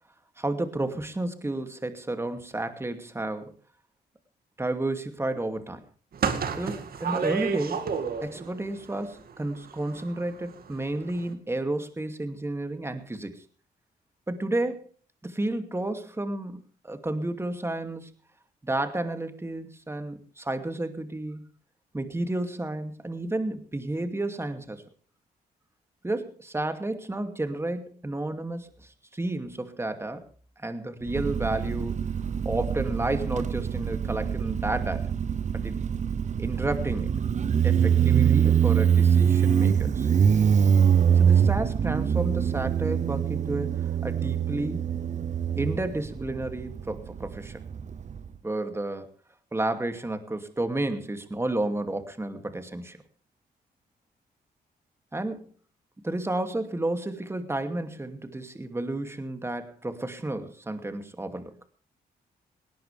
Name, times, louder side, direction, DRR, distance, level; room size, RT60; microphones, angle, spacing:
voice 1, 0.4-3.5 4.6-5.8 6.6-7.8 8.2-13.4 14.3-14.9 15.2-18.1 18.6-21.4 21.9-24.8 26.0-30.2 30.6-32.1 32.4-35.1 35.5-35.8 36.4-37.2 37.6-40.1 41.1-44.9 45.6-47.6 48.4-49.1 49.5-53.0 55.1-55.5 56.0-61.5, right 2 dB, 15° right, 7 dB, 2.5 m, -31 dB
sound 1, 6.1-8.5 8.8-10.4 10.7-10.8 11.1-11.2, right 6 dB, 65° right, 2.2 m, -30 dB
Motorcycle, 31.1-48.3, right 8 dB, 45° right, 0.7 m, -24 dB
19.0 x 18.0 x 3.4 m, 0.39 s
cardioid pair, 95°, 17 cm